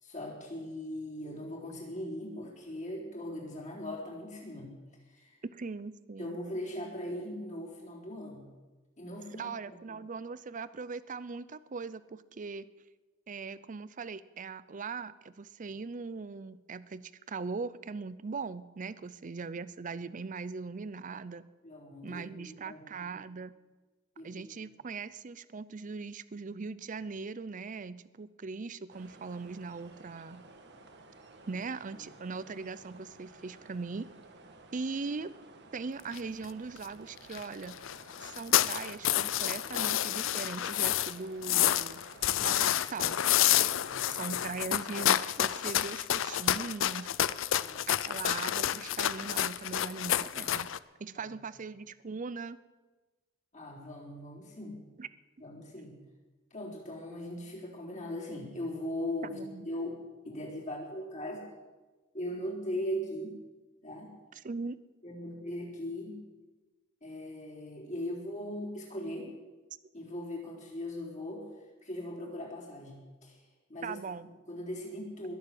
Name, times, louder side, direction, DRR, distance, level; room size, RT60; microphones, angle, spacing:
voice 1, 0.0-4.7 5.1-5.4 6.2-8.5 9.0-10.0 21.6-22.9 23.1-23.3 24.2-24.4 31.5-31.6 31.9-32.1 43.8-44.4 47.5-47.9 50.3-50.4 53.5-54.8 55.4-56.0 56.5-59.4 59.7-61.4 62.1-63.4 63.8-64.1 65.0-66.2 67.0-69.3 69.9-71.5 71.8-73.4 73.7-74.0 74.5-75.3, left 1 dB, 40° left, -3 dB, 4.0 m, -39 dB
voice 2, 5.4-6.4 9.3-12.7 13.3-21.5 22.0-23.5 24.2-30.4 31.5-34.1 34.7-35.3 35.7-37.8 38.2-42.0 42.4-43.2 44.1-47.1 47.9-50.7 51.0-52.6 55.0-55.1 59.2-59.7 64.4-64.8 73.8-74.3, right 4 dB, 40° right, 16 dB, 0.5 m, -40 dB
sound 1, 28.9-44.6, right 3 dB, 60° right, 1.5 m, -54 dB
sound 2, 36.1-36.2 36.4-36.5 36.8-36.9 37.2-37.4 37.7-41.1 41.4-50.8, left 12 dB, 70° left, 0.5 m, -29 dB
21.5 x 7.3 x 7.7 m, 1.2 s
head